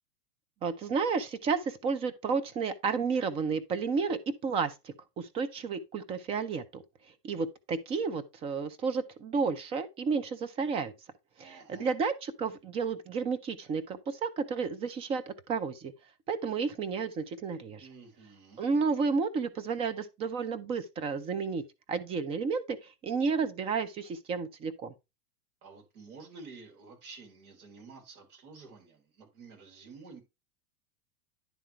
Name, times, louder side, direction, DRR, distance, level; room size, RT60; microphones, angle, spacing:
voice 1, 0.6-6.8 7.2-10.9 11.4-15.9 16.3-17.8 18.6-21.6 21.9-24.9, right 5 dB, 15° right, 0.3 m, -32 dB
voice 2, 11.4-12.0 17.8-18.6 25.6-30.2, right 4 dB, 70° right, 3.9 m, -50 dB
10.5 x 3.7 x 4.2 m
supercardioid pair, 135°, 44 cm